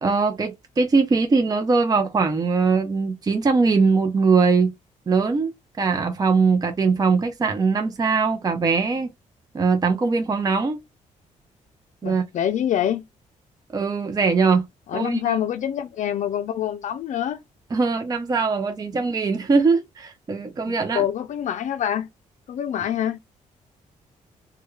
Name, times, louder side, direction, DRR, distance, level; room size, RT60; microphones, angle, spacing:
voice 1, 0.0-4.7 5.1-5.5 5.8-9.1 9.5-10.8 12.0-12.2 13.7-14.6 14.9-15.3 17.7-21.0, right 4 dB, 30° right, 0.5 m, -21 dB
voice 2, 12.0-13.0 14.9-17.4 20.7-22.1 22.5-23.2, left 10 dB, 65° left, 0.4 m, -26 dB
3.1 x 2.2 x 3.5 m
cardioid pair, 100°, 14 cm